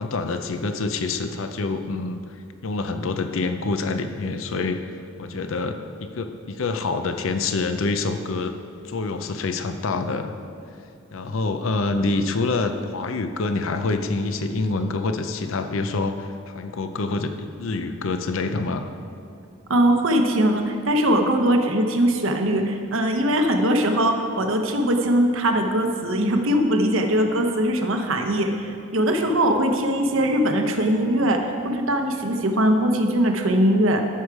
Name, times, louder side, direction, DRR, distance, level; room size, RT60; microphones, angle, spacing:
voice 1, 0.0-2.4 2.6-4.8 5.2-8.5 8.8-10.4 11.1-18.9, left 3 dB, 65° left, 8 dB, 0.6 m, -26 dB
voice 2, 19.7-34.0, right 1 dB, 65° right, 4 dB, 1.0 m, -21 dB
13.5 x 6.4 x 4.8 m, 2.5 s
head